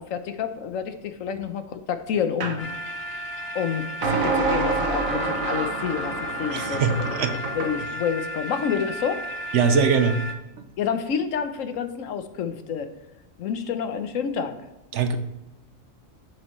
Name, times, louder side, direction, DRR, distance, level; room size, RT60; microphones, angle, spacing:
voice 1, 0.0-2.7 3.1-3.2 3.5-7.2 7.5-9.2 10.8-12.9 13.4-14.6, left 7 dB, 80° left, 9 dB, 1.1 m, -29 dB
sound 1, 2.4-2.6 4.0-7.8, right 3 dB, 85° right, 1.5 m, -27 dB
sound 2, 2.6-10.3, equal, 55° left, 1.1 m, -34 dB
voice 2, 6.5-7.3 9.5-10.2 14.9-15.2, right 5 dB, 65° right, 8 dB, 1.0 m, -21 dB
7.8 x 7.4 x 3.1 m, 0.98 s
omnidirectional pair, 1.4 m